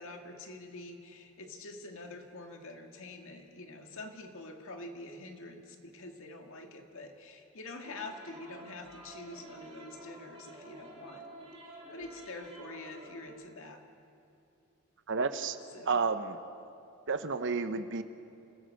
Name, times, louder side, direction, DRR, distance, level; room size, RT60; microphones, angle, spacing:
voice 1, 0.0-11.3 11.7-13.8 15.7-16.0, left 2 dB, 65° left, 4 dB, 2.1 m, -46 dB
sound 1, 7.8-13.3, right 1 dB, 25° right, 4.2 m, -50 dB
voice 2, 15.1-15.6 15.9-16.4 17.1-18.0, right 4 dB, 60° right, 10 dB, 1.0 m, -31 dB
28.5 x 16.0 x 6.5 m, 2.7 s
head